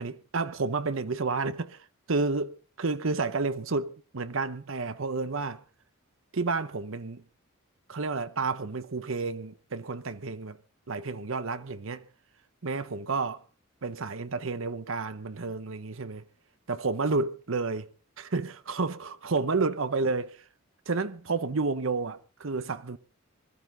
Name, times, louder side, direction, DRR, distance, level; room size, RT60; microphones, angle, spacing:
voice 1, 0.0-5.6 6.3-7.2 7.9-10.6 10.9-12.0 12.6-13.4 13.8-16.2 16.7-17.9 18.2-20.3 20.9-23.0, right 4 dB, 65° right, 0.8 m, -30 dB
21.0 x 14.5 x 3.9 m
head